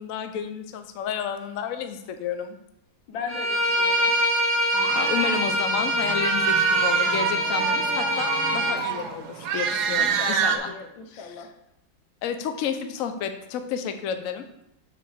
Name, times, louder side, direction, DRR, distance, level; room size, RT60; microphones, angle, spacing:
voice 1, 0.0-2.6 5.0-10.7 11.1-11.5 12.2-14.4, left 8 dB, 65° left, 8 dB, 0.8 m, -31 dB
voice 2, 3.1-4.1 10.0-11.5, left 5 dB, 85° left, 5 dB, 1.7 m, -37 dB
Bowed string instrument, 3.3-8.8, equal, 45° left, 1.3 m, -24 dB
sound 1, 4.7-10.6, right 7 dB, 70° right, 1.1 m, -27 dB
6.6 x 4.1 x 6.3 m, 0.83 s
omnidirectional pair, 2.1 m